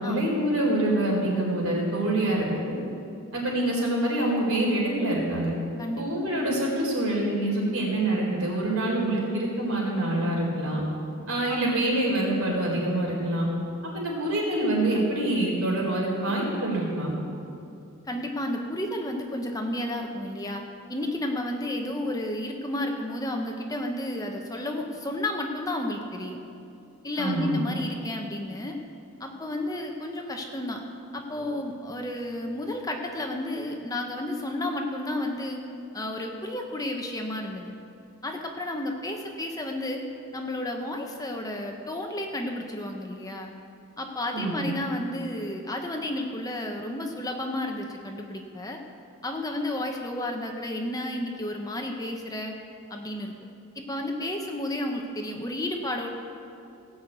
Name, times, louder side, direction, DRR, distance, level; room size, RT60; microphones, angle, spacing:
voice 1, 0.0-2.8 3.3-5.5 6.0-10.8 11.3-13.5 13.9-17.1 27.2-27.6 44.3-44.6, right 1 dB, 65° right, -2 dB, 4.0 m, -26 dB
voice 2, 11.5-12.1 18.0-20.6 20.9-26.4 27.0-28.8 29.2-30.8 31.1-35.6 35.9-37.7 38.2-40.0 40.3-43.5 44.0-48.8 49.2-52.5 52.9-53.3 53.7-56.1, left 1 dB, 15° left, 2 dB, 0.9 m, -32 dB
17.0 x 6.5 x 8.4 m, 2.6 s
head